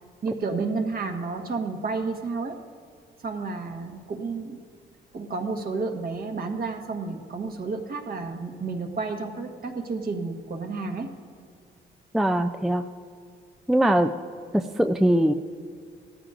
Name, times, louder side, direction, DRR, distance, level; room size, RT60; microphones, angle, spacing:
voice 1, 0.2-2.6 3.2-4.6 5.1-11.1, right 4 dB, 50° right, 3 dB, 1.5 m, -31 dB
voice 2, 12.1-12.8 13.7-14.1 14.5-15.3, right 1 dB, ahead, 6 dB, 0.4 m, -21 dB
18.0 x 14.0 x 2.5 m, 2.2 s
cardioid pair, 90°, 20 cm